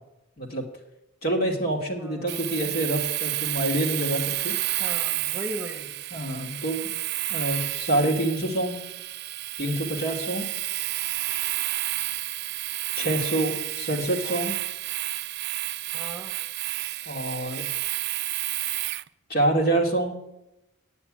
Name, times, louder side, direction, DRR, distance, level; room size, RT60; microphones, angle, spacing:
voice 1, 1.2-4.6 6.1-6.9 7.3-8.8 9.6-10.5 13.0-14.6 17.1-17.6 19.3-20.2, right 1 dB, 45° left, 1 dB, 2.2 m, -26 dB
voice 2, 2.0-2.7 4.8-5.9 14.2-14.5 15.9-16.4, equal, 15° right, 3 dB, 1.4 m, -38 dB
Domestic sounds home sounds, 2.3-19.1, right 17 dB, 50° right, 0.4 m, -30 dB
10.0 x 7.0 x 8.9 m, 0.90 s
head